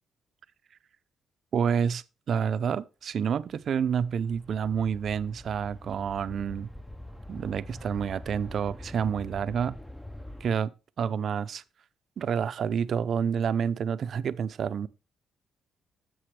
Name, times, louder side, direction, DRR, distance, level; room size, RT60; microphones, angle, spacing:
voice 1, 1.5-6.7 7.3-9.7 10.4-10.7 11.0-11.6 12.2-14.9, right 7 dB, 60° right, 0.5 m, -28 dB
sound 1, 3.5-10.6, left 1 dB, 5° left, 0.6 m, -44 dB
10.0 x 7.7 x 3.3 m
cardioid pair, 90°, 0 cm